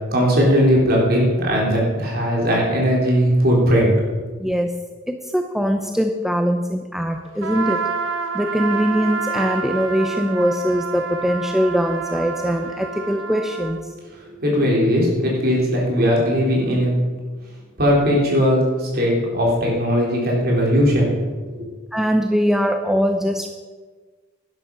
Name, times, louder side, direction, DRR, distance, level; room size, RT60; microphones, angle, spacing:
voice 1, 0.1-4.1 14.4-16.9 17.8-21.3 21.5-21.7, equal, 50° right, -3 dB, 4.0 m, -18 dB
voice 2, 4.4-4.7 5.1-7.8 8.3-13.9 21.9-23.5, equal, ahead, 5 dB, 0.5 m, -21 dB
Trumpet, 7.4-13.8, right 5 dB, 80° right, 0.9 m, -28 dB
11.5 x 11.0 x 5.5 m, 1.4 s
head